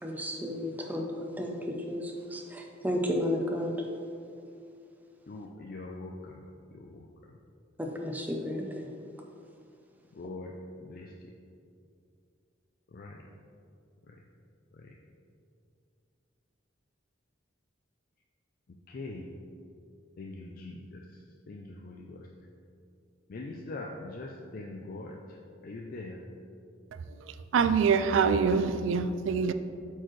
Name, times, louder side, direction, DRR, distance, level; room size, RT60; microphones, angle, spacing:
voice 1, 0.0-3.8 7.8-8.9, left 1 dB, 10° right, 2 dB, 0.5 m, -33 dB
voice 2, 5.3-6.3 6.7-7.0 10.2-10.5 10.9-11.1 12.9-13.2 18.9-19.3 20.2-21.0 21.5-22.2 23.3-25.2 25.6-26.2, left 2 dB, 50° left, 0 dB, 0.4 m, -42 dB
voice 3, 27.5-29.5, right 6 dB, 80° right, 11 dB, 0.3 m, -24 dB
7.8 x 4.5 x 3.2 m, 2.5 s
head